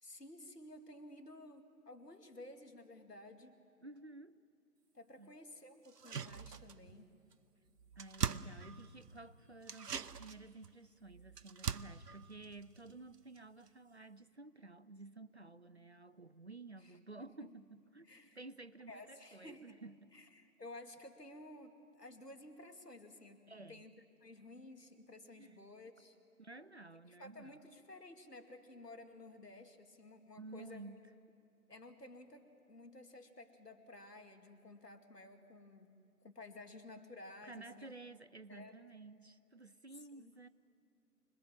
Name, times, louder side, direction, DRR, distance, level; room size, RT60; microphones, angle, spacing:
voice 1, 0.0-3.6 4.9-7.1 16.8-17.5 18.1-18.4 18.9-19.8 20.1-23.4 23.7-26.2 27.1-30.9 31.7-38.0 38.5-38.8 40.0-40.3, left 2 dB, 80° left, 6 dB, 2.5 m, -54 dB
voice 2, 3.8-4.4 5.2-5.3 8.0-20.1 23.5-23.8 25.4-25.7 26.4-27.6 30.4-31.0 37.4-40.5, right 3 dB, 45° right, 14 dB, 0.5 m, -53 dB
sound 1, 5.9-7.0 7.3-7.4 7.7-9.2 9.6-13.4 13.7-13.8, right 6 dB, 80° right, 0.7 m, -42 dB
25.5 x 20.5 x 7.6 m, 2.4 s
figure-of-eight pair, 150°, 47 cm